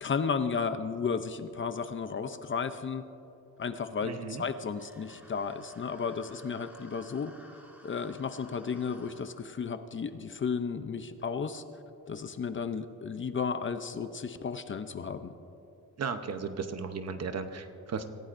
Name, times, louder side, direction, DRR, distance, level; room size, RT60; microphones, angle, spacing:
voice 1, 0.0-3.0 3.6-7.3 7.8-11.6 12.1-15.3, left 5 dB, 35° left, 9 dB, 0.6 m, -33 dB
voice 2, 4.0-4.4 16.0-18.0, right 5 dB, 50° right, 8 dB, 0.9 m, -35 dB
sound 1, 4.7-9.3, equal, 5° right, 1.9 m, -55 dB
26.5 x 16.0 x 2.6 m, 2.7 s
wide cardioid pair, 165°, 34 cm